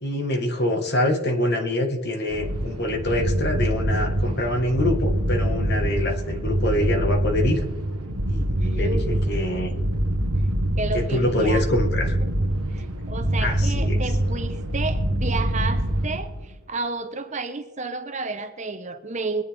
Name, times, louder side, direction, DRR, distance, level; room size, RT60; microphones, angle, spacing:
voice 1, 0.0-7.6 8.3-9.7 10.9-12.2 13.4-14.0, left 1 dB, 45° left, 4 dB, 1.6 m, -25 dB
sound 1, 2.3-16.6, right 1 dB, 90° right, 1.3 m, -25 dB
voice 2, 8.6-9.8 10.8-11.6 12.7-19.4, right 3 dB, 30° right, 8 dB, 0.8 m, -31 dB
23.5 x 9.7 x 3.5 m, 1.2 s
head